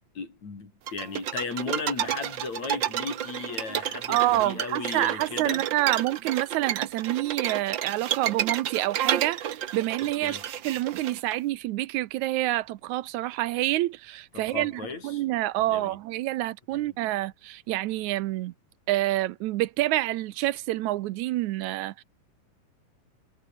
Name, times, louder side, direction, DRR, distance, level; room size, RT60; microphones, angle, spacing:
voice 1, 0.1-5.6 10.2-10.4 14.3-15.2 15.6-16.0 16.7-17.0, left 4 dB, 65° left, 6.4 m, -36 dB
sound 1, 0.9-11.3, right 10 dB, 60° right, 1.2 m, -31 dB
voice 2, 4.1-10.4 10.6-18.5 18.9-22.0, right 16 dB, 85° right, 2.1 m, -27 dB
omnidirectional pair, 3.4 m